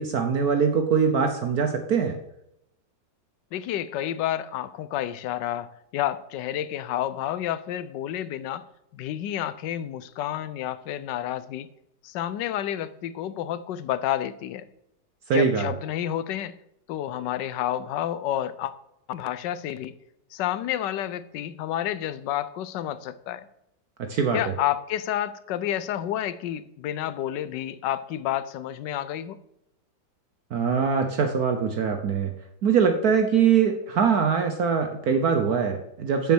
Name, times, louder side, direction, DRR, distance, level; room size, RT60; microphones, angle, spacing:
voice 1, 0.0-2.2 15.3-15.7 24.0-24.4 30.5-32.3 32.6-36.3, right 6 dB, 60° right, 6 dB, 1.2 m, -22 dB
voice 2, 3.5-8.6 8.9-11.7 12.0-14.7 15.3-16.5 16.9-18.7 19.1-19.9 20.3-23.5 24.3-29.4, left 11 dB, 75° left, 14 dB, 1.3 m, -30 dB
10.0 x 7.1 x 6.2 m, 0.81 s
omnidirectional pair, 2.0 m